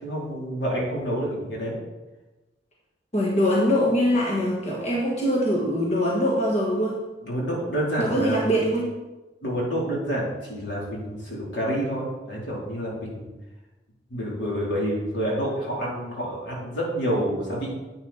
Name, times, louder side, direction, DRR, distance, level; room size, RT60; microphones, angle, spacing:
voice 1, 0.0-1.7 7.2-8.5 9.4-13.3 14.1-17.7, equal, 80° left, -4 dB, 4.0 m, -28 dB
voice 2, 3.1-7.0 8.0-8.9, equal, 40° left, -3 dB, 1.5 m, -23 dB
9.9 x 8.7 x 4.4 m, 1.1 s
head